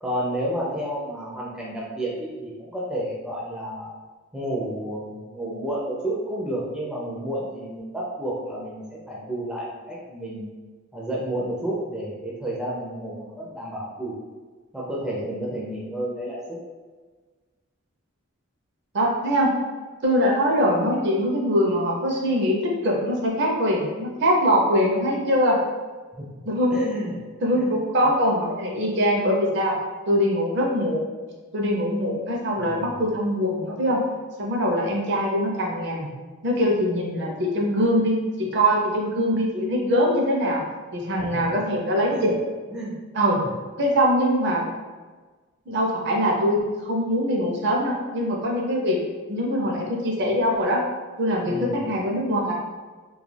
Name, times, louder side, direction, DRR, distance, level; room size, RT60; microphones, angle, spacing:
voice 1, 0.0-3.9 4.3-10.5 10.9-14.2 14.7-16.4 26.1-26.3 26.7-27.2 27.5-27.8 32.6-33.0 41.2-41.4 42.1-42.3 42.7-43.0 43.4-43.5 51.5-51.8, right 1 dB, 5° right, -6 dB, 0.4 m, -31 dB
voice 2, 18.9-19.5 20.0-22.6 22.8-25.6 26.4-26.8 27.4-29.7 30.1-31.0 31.5-34.0 34.4-36.1 36.4-40.6 40.9-42.4 43.1-43.4 43.8-44.7 45.7-49.0 49.3-50.8 51.2-52.5, equal, 55° right, -1 dB, 0.5 m, -22 dB
2.3 x 2.2 x 3.2 m, 1.4 s
head